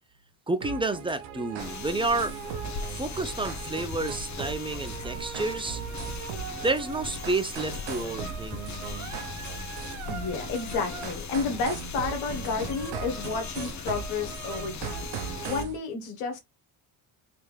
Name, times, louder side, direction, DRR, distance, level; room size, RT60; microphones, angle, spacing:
voice 1, 0.5-2.4 2.9-5.8 6.5-8.6, right 2 dB, 10° right, 0.7 m, -30 dB
sound 1, 0.6-15.8, right 7 dB, 85° right, 0.9 m, -38 dB
sound 2, 1.6-15.6, left 5 dB, 35° left, 0.8 m, -39 dB
voice 2, 10.0-15.1 15.4-16.4, left 4 dB, 90° left, 1.3 m, -31 dB
3.5 x 3.0 x 3.2 m
supercardioid pair, 70°, 48 cm